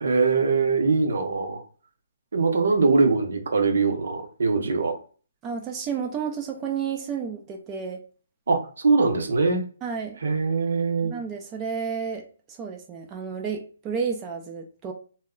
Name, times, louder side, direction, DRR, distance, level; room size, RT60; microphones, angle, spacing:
voice 1, 0.0-1.6 2.3-5.0 8.5-9.6 10.2-11.1, right 4 dB, 75° right, 6 dB, 0.7 m, -22 dB
voice 2, 5.4-8.0 9.8-10.2 11.0-14.9, right 6 dB, 20° right, 2 dB, 0.4 m, -31 dB
2.1 x 2.1 x 3.6 m, 0.39 s
hypercardioid pair, 160°, 0 cm